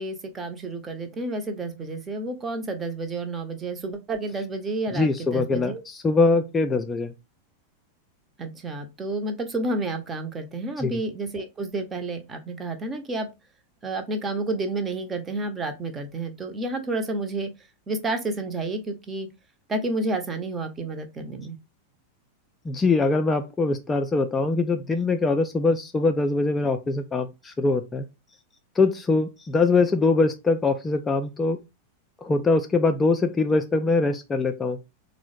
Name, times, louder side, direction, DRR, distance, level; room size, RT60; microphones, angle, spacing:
voice 1, 0.0-5.8 8.4-13.3 13.8-17.5 17.9-19.3 19.7-21.6, right 2 dB, 20° right, 0.6 m, -30 dB
voice 2, 4.9-7.1 10.8-10.9 22.6-28.0 28.8-31.6 32.2-34.8, left 3 dB, 15° left, 0.3 m, -23 dB
3.7 x 2.0 x 3.2 m
figure-of-eight pair, 90°, 0 cm